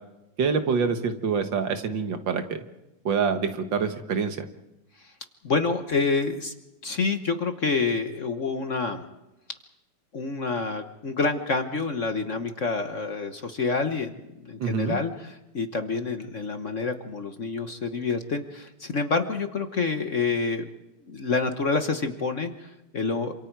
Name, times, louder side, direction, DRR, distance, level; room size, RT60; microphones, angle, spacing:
voice 1, 0.4-2.6 3.1-4.5 14.6-15.0, right 5 dB, 65° right, 7 dB, 2.0 m, -26 dB
voice 2, 5.4-6.5 6.8-9.0 10.1-20.6 21.1-23.3, left 4 dB, 45° left, 7 dB, 1.3 m, -28 dB
27.5 x 26.5 x 4.7 m, 0.95 s
omnidirectional pair, 2.2 m